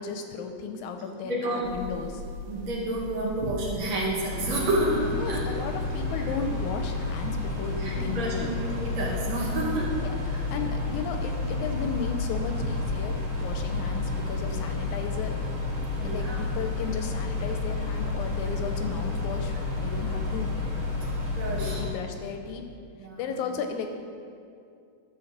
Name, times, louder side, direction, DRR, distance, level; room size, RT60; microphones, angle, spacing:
voice 1, 0.0-2.2 5.1-8.5 10.0-15.4 16.0-20.5 20.9-21.0 21.5-22.7 23.2-23.9, left 5 dB, 80° left, 5 dB, 1.9 m, -35 dB
voice 2, 1.2-1.7 2.5-5.4 7.8-9.9 16.0-16.4 21.4-21.8 23.0-23.3, right 1 dB, 60° right, -4 dB, 2.7 m, -29 dB
sound 1, 1.6-21.6, equal, 85° right, 2.3 m, -40 dB
sound 2, 4.3-21.9, left 3 dB, 20° right, 2.4 m, -31 dB
11.5 x 4.6 x 7.2 m, 2.4 s
omnidirectional pair, 3.6 m